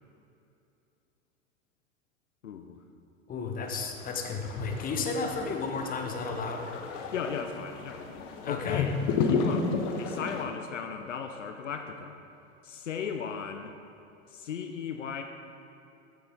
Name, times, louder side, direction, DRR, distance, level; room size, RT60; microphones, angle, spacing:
voice 1, 2.4-2.8 7.1-8.0 8.5-9.7 10.0-12.2 12.6-13.7 14.3-15.2, left 7 dB, 70° left, 6 dB, 0.8 m, -36 dB
voice 2, 3.3-6.7 8.4-8.8, left 4 dB, 20° left, 4 dB, 1.2 m, -33 dB
sound 1, 3.7-10.4, left 4 dB, 40° left, 1.2 m, -33 dB
14.0 x 7.8 x 3.9 m, 2.7 s
figure-of-eight pair, 85°, 38 cm